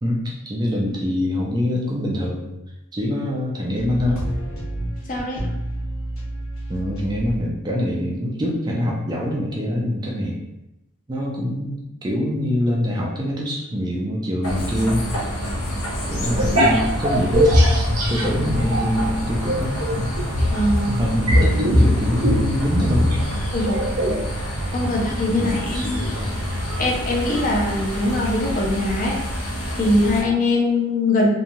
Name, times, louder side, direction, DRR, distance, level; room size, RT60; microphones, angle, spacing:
voice 1, 0.0-2.5 2.9-4.2 6.7-10.4 11.1-15.1 16.1-17.8 18.1-20.2 20.8-23.2 24.8-26.4, equal, 20° right, -3 dB, 0.4 m, -25 dB
sound 1, 3.7-7.4 8.0-8.1, right 1 dB, 75° left, 0.9 m, -30 dB
voice 2, 5.1-5.4 20.5-21.0 23.5-23.8 24.7-26.1 26.8-29.2 29.8-31.3, left 2 dB, 40° left, -2 dB, 0.6 m, -22 dB
sound 2, 14.4-30.2, equal, 90° left, 0.6 m, -27 dB
sound 3, 16.2-19.1 19.4-24.2, equal, 85° right, 0.7 m, -20 dB
2.9 x 2.3 x 2.6 m, 0.90 s
head